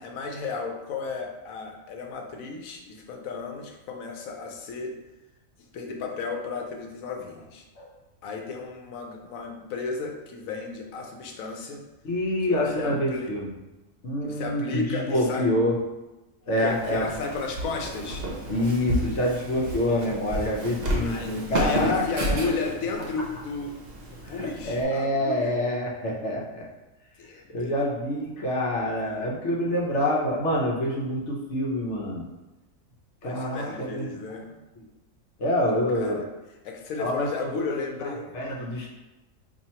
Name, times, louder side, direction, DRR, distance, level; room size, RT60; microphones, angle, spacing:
voice 1, 0.0-4.9 5.6-7.6 8.2-11.8 12.4-13.3 14.2-15.5 16.6-18.2 21.0-23.8 24.1-25.6 27.2-27.7 28.8-29.3 29.7-29.9 33.2-34.5 35.9-36.3 36.6-38.3, left 4 dB, 85° left, 2 dB, 1.0 m, -34 dB
voice 2, 12.0-13.5 14.0-15.8 16.5-17.1 18.5-22.6 24.4-26.6 27.5-32.2 33.2-34.2 35.4-36.2 37.0-38.1 38.3-38.9, left 1 dB, 60° left, -3 dB, 1.0 m, -27 dB
Walk footsteps, 16.7-24.8, right 1 dB, 55° right, 0.5 m, -32 dB
2.8 x 2.7 x 4.3 m, 1.0 s
omnidirectional pair, 1.4 m